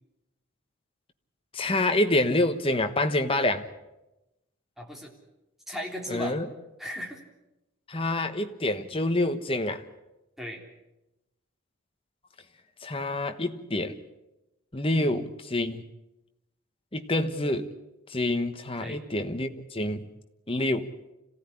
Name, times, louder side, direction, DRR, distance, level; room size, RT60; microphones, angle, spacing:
voice 1, 1.5-3.6 6.1-6.5 7.9-9.8 12.8-14.0 14.7-15.8 16.9-17.7 18.1-20.1 20.5-20.9, left 1 dB, 25° left, 1.3 m, -27 dB
voice 2, 4.8-5.1 5.7-6.4 6.8-7.2 10.4-10.6 14.9-15.1 18.8-19.0, equal, ahead, 3.5 m, -36 dB
26.5 x 16.5 x 10.0 m
head